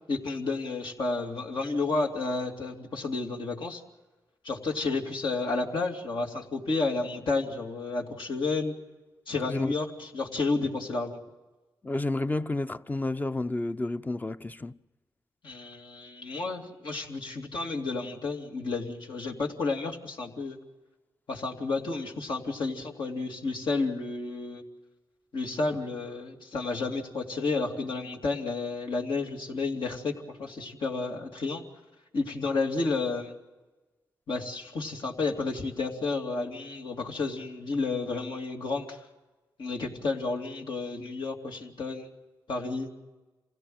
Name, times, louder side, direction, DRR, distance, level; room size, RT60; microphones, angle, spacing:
voice 1, 0.1-3.8 4.4-8.7 9.3-11.2 15.4-20.6 21.3-24.6 25.3-31.6 32.1-33.3 34.3-39.0 39.6-42.1 42.5-42.9, left 3 dB, 70° left, 2.7 m, -31 dB
voice 2, 11.8-14.8, left 2 dB, 20° left, 0.7 m, -30 dB
27.0 x 16.5 x 7.8 m
cardioid pair, 75°, 8 cm